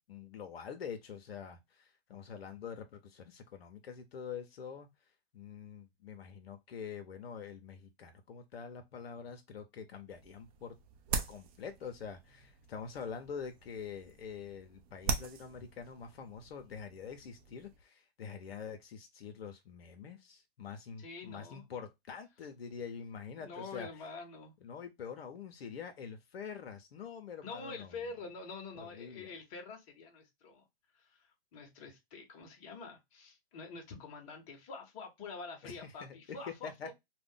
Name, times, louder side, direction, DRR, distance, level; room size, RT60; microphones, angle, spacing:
voice 1, 0.1-4.9 5.3-10.7 11.3-23.9 24.6-27.9 28.7-29.3 35.6-36.2 36.6-36.9, left 6 dB, 75° left, 0.7 m, -45 dB
sound 1, 10.1-17.8, right 5 dB, 35° right, 0.6 m, -42 dB
voice 2, 21.0-21.7 23.4-24.5 27.4-30.6 30.9-36.9, left 4 dB, 35° left, 0.9 m, -46 dB
2.4 x 2.2 x 3.5 m
hypercardioid pair, 140°, 31 cm